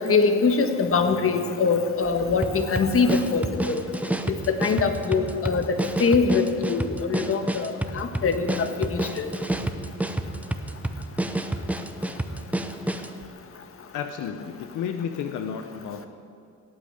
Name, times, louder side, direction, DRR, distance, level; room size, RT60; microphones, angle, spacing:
voice 1, 0.0-3.8 4.3-9.3, left 4 dB, 45° left, 7 dB, 1.5 m, -23 dB
sound 1, 2.4-13.2, right 1 dB, 5° right, 0.9 m, -29 dB
voice 2, 13.9-16.1, left 7 dB, 80° left, 7 dB, 0.9 m, -32 dB
17.5 x 8.8 x 8.1 m, 2.4 s
cardioid pair, 90°, 30 cm